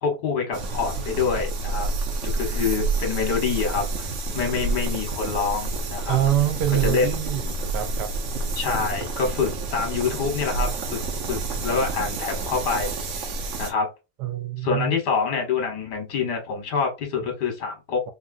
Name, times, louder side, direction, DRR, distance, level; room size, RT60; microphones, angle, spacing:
voice 1, 0.0-1.9 2.2-6.2 6.7-7.2 8.6-11.0 11.3-13.3 13.6-13.9 14.6-18.0, left 5 dB, 80° left, 1.8 m, -26 dB
sound 1, 0.5-13.7, right 3 dB, 60° right, 0.9 m, -29 dB
voice 2, 6.1-8.1 14.2-14.9, right 12 dB, 85° right, 1.3 m, -25 dB
3.6 x 2.6 x 2.5 m
omnidirectional pair, 1.8 m